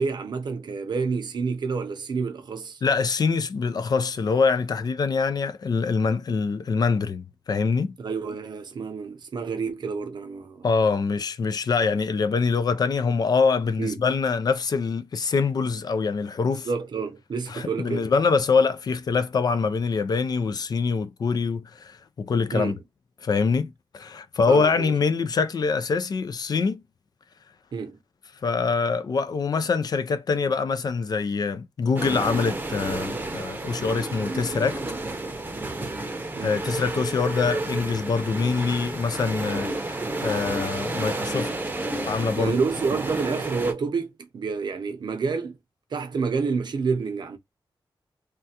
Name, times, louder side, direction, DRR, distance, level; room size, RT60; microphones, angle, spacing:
voice 1, 0.0-2.8 8.0-10.7 13.8-14.0 16.7-18.1 22.5-22.8 24.5-24.9 27.7-28.0 36.4-36.5 42.4-45.6 45.9-47.4, right 5 dB, 65° right, 0.7 m, -28 dB
voice 2, 2.8-7.9 10.6-16.7 17.5-22.7 23.2-26.8 28.4-34.8 36.4-41.5 42.1-42.6, left 5 dB, 55° left, 0.4 m, -24 dB
sound 1, 32.0-43.7, right 2 dB, 20° right, 0.7 m, -31 dB
3.3 x 2.3 x 2.8 m
wide cardioid pair, 100°, 8 cm